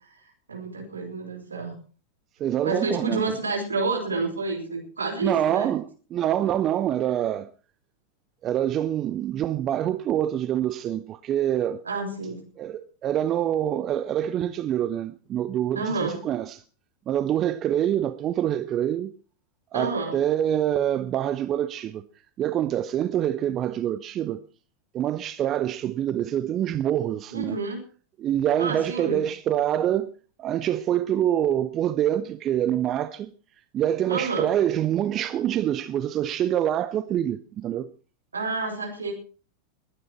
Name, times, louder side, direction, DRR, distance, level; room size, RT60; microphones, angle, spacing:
voice 1, 0.5-1.7 2.6-5.7 11.8-12.4 15.7-16.2 19.7-20.2 27.3-27.8 28.6-29.2 34.1-34.5 38.3-39.1, right 3 dB, 75° right, 4.8 m, -29 dB
voice 2, 2.4-3.3 5.2-7.5 8.4-11.8 12.6-16.6 17.1-19.1 19.7-22.0 22.4-24.4 24.9-27.6 28.2-30.1 30.4-33.3 33.7-37.9, right 11 dB, 30° right, 0.7 m, -25 dB
21.5 x 9.8 x 4.5 m
figure-of-eight pair, 90°, 0 cm